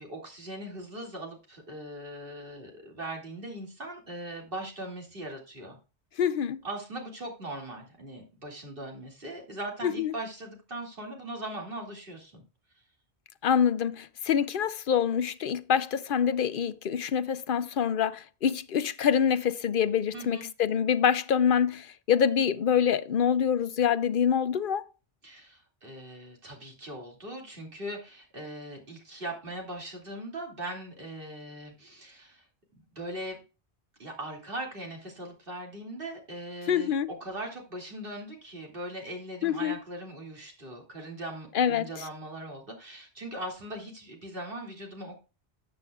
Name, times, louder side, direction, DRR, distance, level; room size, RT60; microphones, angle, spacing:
voice 1, 0.0-5.8 6.6-12.4 20.1-20.5 25.2-32.4 32.7-33.4 34.0-36.9 37.2-45.2, right 1 dB, 60° right, 2.8 m, -40 dB
voice 2, 6.2-6.6 9.8-10.1 13.4-24.8 36.7-37.1 39.4-39.8 41.5-41.9, left 8 dB, 60° left, 0.8 m, -26 dB
13.5 x 7.8 x 2.4 m
omnidirectional pair, 1.1 m